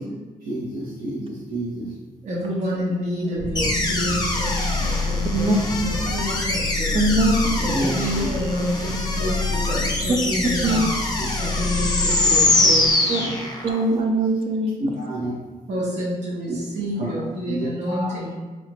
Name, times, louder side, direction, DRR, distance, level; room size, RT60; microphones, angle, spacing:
voice 1, 0.4-1.9 7.6-7.9 8.2-8.3 10.7-10.8 13.1-13.3 14.8-15.3 16.4-16.6 17.0-17.1 17.5-18.1, right 1 dB, 90° right, -8 dB, 0.9 m, -29 dB
voice 2, 2.2-5.5 5.8-7.1 7.6-10.9 11.4-13.4 15.7-18.3, equal, 55° right, -6 dB, 0.8 m, -28 dB
sound 1, 3.4-12.9, left 3 dB, 90° left, 0.4 m, -28 dB
sound 2, 3.6-13.8, left 2 dB, 30° left, 0.5 m, -24 dB
voice 3, 5.3-5.9 6.9-7.5 10.1-10.2 10.6-10.9 13.1-13.2 13.6-14.7, right 1 dB, 40° right, 3 dB, 0.4 m, -21 dB
3.2 x 2.9 x 3.0 m, 1.3 s
wide cardioid pair, 145°, 14 cm